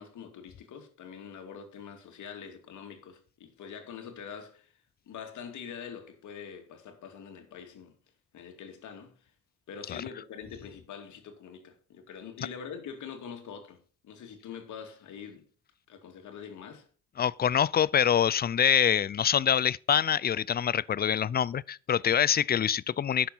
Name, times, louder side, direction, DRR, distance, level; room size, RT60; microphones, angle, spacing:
voice 1, 0.0-4.7 5.1-7.9 8.3-9.2 9.7-13.8 14.0-15.5 15.9-16.9, left 7 dB, 75° left, 2.6 m, -44 dB
voice 2, 17.2-23.3, left 9 dB, 35° left, 0.4 m, -25 dB
10.0 x 7.1 x 5.7 m
cardioid pair, 90°, 30 cm